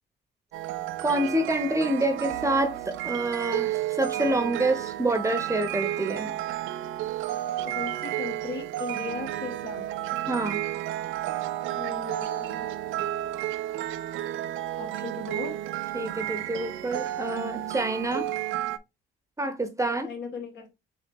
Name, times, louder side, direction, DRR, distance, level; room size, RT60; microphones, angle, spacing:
sound 1, 0.5-18.8, right 13 dB, 90° right, 0.4 m, -32 dB
voice 1, 1.0-6.3 10.3-10.6 15.9-18.3 19.4-20.1, right 1 dB, 15° right, 0.8 m, -27 dB
voice 2, 7.6-9.8 11.8-12.7 14.8-15.5 20.0-20.7, left 4 dB, 65° left, 1.8 m, -37 dB
4.1 x 3.2 x 3.5 m
cardioid pair, 90°, 20 cm